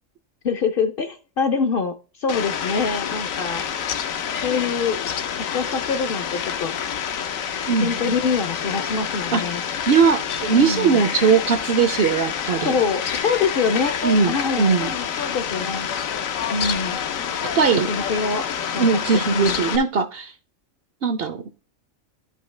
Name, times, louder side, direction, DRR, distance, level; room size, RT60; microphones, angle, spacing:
voice 1, 0.4-3.6 4.4-5.0 5.5-6.7 7.8-9.6 10.5-11.0 12.6-15.9 16.5-17.0 17.9-18.9 19.2-19.6, left 5 dB, 55° left, 8 dB, 0.6 m, -25 dB
Fowl, 2.3-19.8, left 8 dB, 85° left, 1.2 m, -28 dB
voice 2, 7.7-8.1 9.3-9.4 9.9-12.7 14.0-14.9 17.5-17.9 18.8-20.3 21.0-21.4, right 5 dB, 60° right, 11 dB, 0.7 m, -20 dB
11.0 x 5.5 x 3.2 m, 0.34 s
omnidirectional pair, 1.4 m